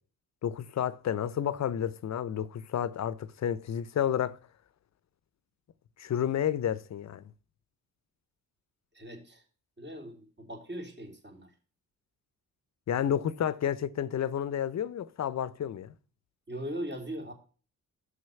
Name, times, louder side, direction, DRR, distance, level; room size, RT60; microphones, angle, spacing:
voice 1, 0.4-4.4 6.0-7.3 12.9-15.9, left 9 dB, 50° left, 0.8 m, -31 dB
voice 2, 8.9-9.4 9.8-11.5 16.5-17.3, equal, 30° right, 3.1 m, -39 dB
6.4 x 5.6 x 6.9 m
supercardioid pair, 65°, 35 cm